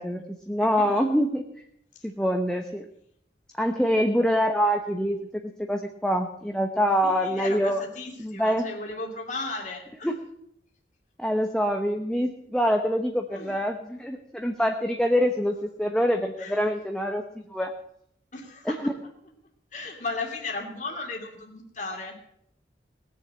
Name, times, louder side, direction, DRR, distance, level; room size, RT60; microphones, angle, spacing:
voice 1, 0.0-1.4 2.0-2.9 3.6-7.8 8.2-8.7 10.0-10.2 11.2-17.2 17.5-17.7 18.7-18.9, equal, 5° left, 3 dB, 0.9 m, -25 dB
voice 2, 0.6-1.0 7.0-10.1 13.3-13.5 16.4-16.6 18.3-18.8 19.7-22.2, left 3 dB, 45° left, 1 dB, 2.7 m, -35 dB
19.5 x 6.9 x 8.7 m, 0.73 s
head